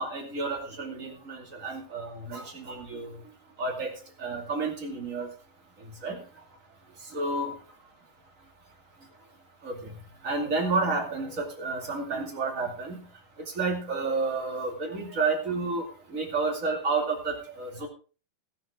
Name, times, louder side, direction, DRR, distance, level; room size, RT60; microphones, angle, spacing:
voice 1, 0.0-3.2 3.6-3.9 4.2-5.3 5.8-6.2 7.1-7.5 9.6-13.0 13.5-17.9, right 3 dB, 25° right, 2 dB, 2.1 m, -31 dB
13.5 x 12.0 x 3.7 m, 0.35 s
omnidirectional pair, 4.4 m